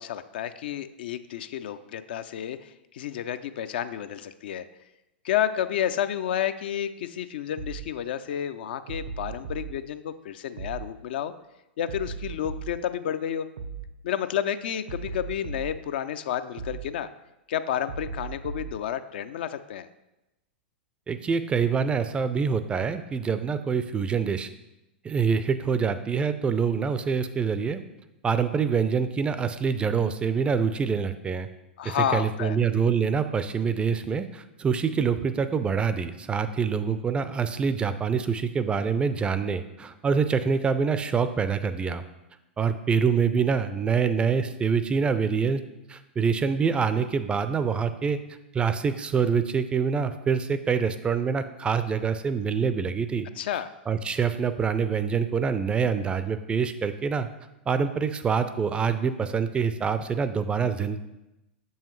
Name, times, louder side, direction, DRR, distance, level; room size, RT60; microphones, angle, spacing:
voice 1, 0.0-4.7 5.2-11.3 11.8-13.5 14.0-17.1 17.5-19.9 31.8-32.6 53.4-53.7, left 10 dB, 60° left, 12 dB, 0.4 m, -30 dB
sound 1, 7.6-7.9 8.9-9.7 10.6-10.9 11.9-12.8 13.6-13.9 14.9-15.8 16.6-16.9 17.9-18.8, right 5 dB, 70° right, 0.6 m, -36 dB
voice 2, 21.1-24.5 25.0-27.8 28.2-31.5 31.8-42.0 42.6-45.6 45.9-48.2 48.5-53.3 53.9-57.3 57.7-61.0, right 6 dB, 15° right, 11 dB, 0.4 m, -25 dB
6.9 x 5.5 x 3.1 m, 0.94 s
figure-of-eight pair, 100°, 6 cm